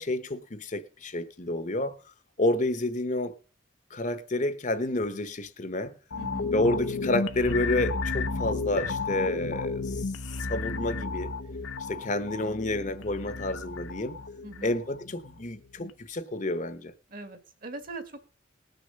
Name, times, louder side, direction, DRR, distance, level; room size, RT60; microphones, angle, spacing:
voice 1, 0.0-2.0 2.4-3.3 3.9-6.0 6.5-10.1 10.5-11.3 11.8-14.2 14.6-16.9, left 1 dB, 40° left, 1.0 m, -29 dB
sound 1, 6.1-15.4 15.8-15.9, left 3 dB, 90° left, 1.0 m, -33 dB
voice 2, 6.2-6.5 14.4-14.8 17.1-18.2, right 2 dB, 45° right, 1.9 m, -41 dB
19.5 x 6.6 x 5.3 m
head